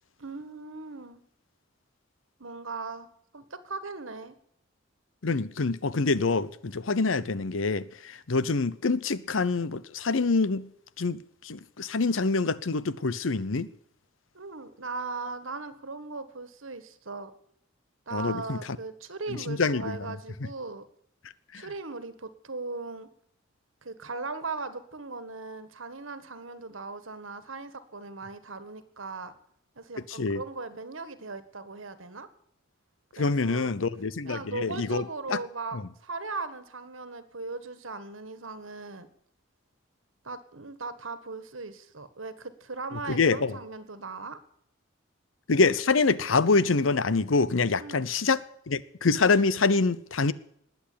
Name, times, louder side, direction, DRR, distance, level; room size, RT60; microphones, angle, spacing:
voice 1, 0.2-1.2 2.4-3.1 3.3-4.3 14.3-17.3 18.1-20.8 21.5-23.1 23.8-29.3 29.7-32.3 33.2-33.7 34.2-39.1 40.2-44.4 47.8-48.0, right 3 dB, 85° right, 1.7 m, -38 dB
voice 2, 5.2-10.7 11.0-11.2 11.4-13.7 18.1-18.6 19.5-20.0 21.5-21.6 30.2-30.4 33.2-35.0 35.3-35.4 43.1-43.5 45.5-48.4 48.7-50.3, left 4 dB, 80° left, 0.8 m, -25 dB
20.0 x 8.2 x 8.6 m
head